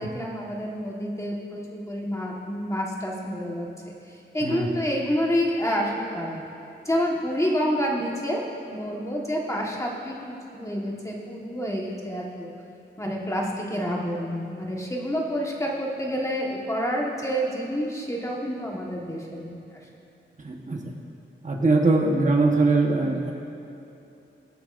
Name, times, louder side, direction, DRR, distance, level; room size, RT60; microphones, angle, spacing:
voice 1, 0.0-3.9 4.3-6.4 6.8-12.5 13.0-19.6, equal, 15° left, -2 dB, 1.4 m, -28 dB
voice 2, 20.4-20.9 21.4-23.3, right 3 dB, 40° right, 0 dB, 1.1 m, -22 dB
23.0 x 8.7 x 2.6 m, 2.8 s
wide cardioid pair, 145°, 20 cm